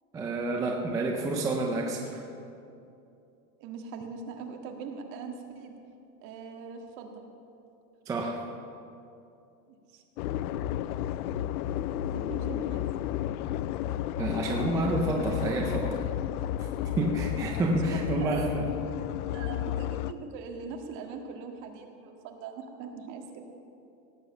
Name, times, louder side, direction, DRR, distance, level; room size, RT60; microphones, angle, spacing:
voice 1, 0.1-2.2 8.1-8.4 14.2-15.9 17.0-18.6, right 2 dB, 10° right, 1 dB, 0.4 m, -29 dB
voice 2, 3.6-5.7 6.2-7.2 9.9-10.0 12.1-12.9 17.6-18.5 19.3-23.4, right 5 dB, 45° right, 3 dB, 1.8 m, -41 dB
sound 1, 10.2-20.1, left 12 dB, 85° left, 0.6 m, -32 dB
17.5 x 8.2 x 7.1 m, 2.7 s
supercardioid pair, 165°, 44 cm